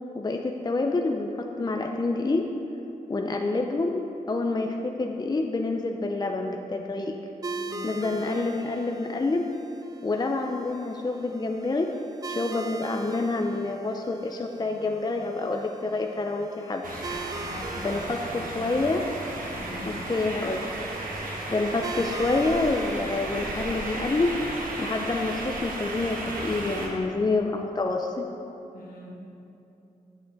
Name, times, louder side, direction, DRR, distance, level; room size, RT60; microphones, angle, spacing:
voice 1, 0.1-1.3 1.6-2.5 3.1-7.2 7.8-9.5 10.0-11.9 12.3-16.8 17.8-19.0 19.8-20.7 21.5-24.3 24.8-28.2, left 3 dB, 25° left, 3 dB, 0.5 m, -27 dB
sound 1, 7.4-26.6, right 3 dB, 25° right, 0.4 m, -42 dB
voice 2, 7.7-8.2 17.4-18.7 19.5-20.3 28.7-29.3, left 1 dB, 70° left, -3 dB, 1.6 m, -43 dB
sound 2, 16.8-26.9, right 2 dB, 70° right, 1.3 m, -34 dB
9.1 x 6.4 x 3.9 m, 2.9 s
cardioid pair, 65°, 15 cm